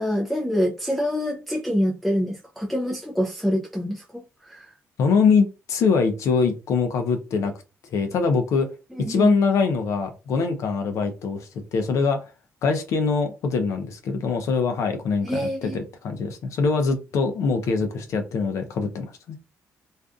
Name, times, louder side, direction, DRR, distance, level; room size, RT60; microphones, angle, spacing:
voice 1, 0.0-4.7 8.9-9.3 15.2-15.8, equal, ahead, 0.4 m, -26 dB
voice 2, 5.0-7.5 7.8-8.7 9.1-12.3 12.6-19.4, left 5 dB, 70° left, 0.5 m, -23 dB
2.5 x 2.3 x 2.3 m
cardioid pair, 105°, 5 cm